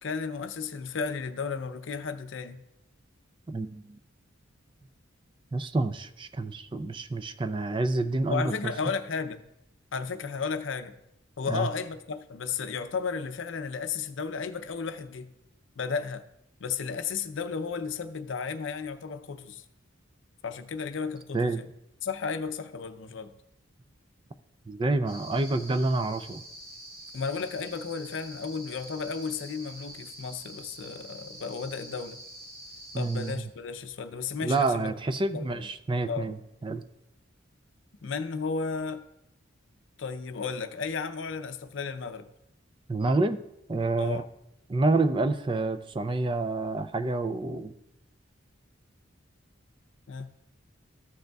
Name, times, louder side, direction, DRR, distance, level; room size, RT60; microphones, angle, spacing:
voice 1, 0.0-2.6 8.3-9.5 9.9-10.9 11.4-15.3 15.8-16.2 16.6-19.6 20.4-21.7 22.0-23.3 27.1-32.2 32.9-34.9 35.3-35.7 36.1-36.4 38.0-39.0 40.0-42.3 44.0-44.3 50.1-50.3, left 5 dB, 65° left, 0.5 m, -34 dB
voice 2, 3.5-4.0 5.5-8.5 11.5-11.7 21.3-21.6 24.7-26.4 32.9-33.4 34.4-36.8 42.9-43.4 43.7-44.2 44.7-47.7, right 2 dB, 25° right, 0.4 m, -28 dB
sound 1, 25.1-33.3, right 1 dB, 65° right, 3.3 m, -46 dB
14.5 x 6.5 x 2.3 m
head